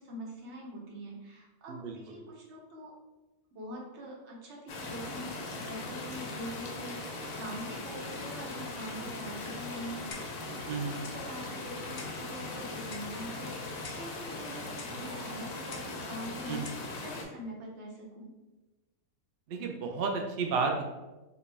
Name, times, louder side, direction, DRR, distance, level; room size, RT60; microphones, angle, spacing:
voice 1, 0.0-2.9 3.5-18.3, equal, 55° right, -2 dB, 1.0 m, -44 dB
sound 1, 4.7-17.2, left 2 dB, 90° left, 1.2 m, -40 dB
Clock, 10.1-10.5 11.0-11.2 12.0-12.2 12.9-13.2 13.8-14.1 14.8-15.0 15.7-16.0 16.6-16.9, left 4 dB, 65° left, 0.5 m, -47 dB
voice 2, 19.5-20.8, right 4 dB, 90° right, 2 dB, 0.5 m, -31 dB
4.3 x 2.3 x 3.3 m, 1.1 s
omnidirectional pair, 1.6 m